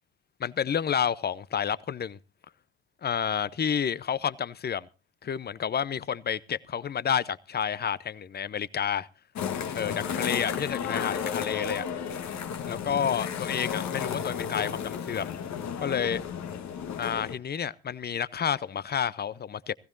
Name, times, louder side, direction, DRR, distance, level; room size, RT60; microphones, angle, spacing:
voice 1, 0.4-2.2 3.0-4.9 5.2-9.1 9.7-11.9 12.7-15.3 15.8-16.2 17.0-19.7, left 8 dB, 30° left, 0.6 m, -30 dB
sound 1, 9.3-17.4, left 7 dB, 55° left, 1.4 m, -33 dB
21.0 x 15.5 x 2.6 m
hypercardioid pair, 55°, 34 cm